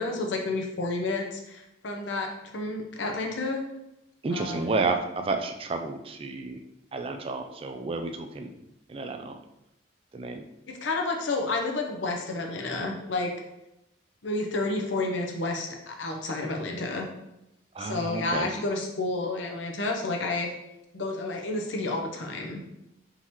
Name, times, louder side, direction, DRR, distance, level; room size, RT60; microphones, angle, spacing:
voice 1, 0.0-2.3 2.5-3.6 4.3-4.8 10.7-13.3 14.2-17.1 17.8-20.5 20.9-22.6, left 2 dB, 80° left, 2 dB, 0.8 m, -30 dB
voice 2, 4.2-6.6 6.9-8.5 8.9-9.4 10.1-10.4 17.7-18.5, right 3 dB, 30° right, 6 dB, 0.3 m, -31 dB
4.2 x 3.8 x 3.0 m, 0.88 s
head